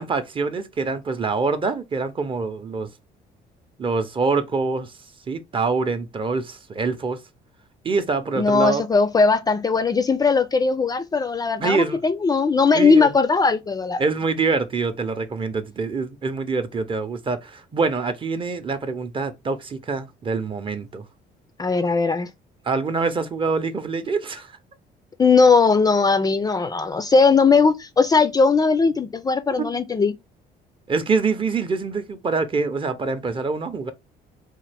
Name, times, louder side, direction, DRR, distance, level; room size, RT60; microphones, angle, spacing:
voice 1, 0.0-2.9 3.8-4.9 5.3-7.2 7.8-8.8 11.6-12.0 12.7-13.1 14.0-21.0 22.6-24.5 29.6-29.8 30.9-33.9, right 4 dB, 30° right, 0.7 m, -25 dB
voice 2, 8.4-14.0 21.6-22.3 25.2-30.2, left 4 dB, 20° left, 0.4 m, -19 dB
3.8 x 2.5 x 3.3 m
cardioid pair, 110°, 17 cm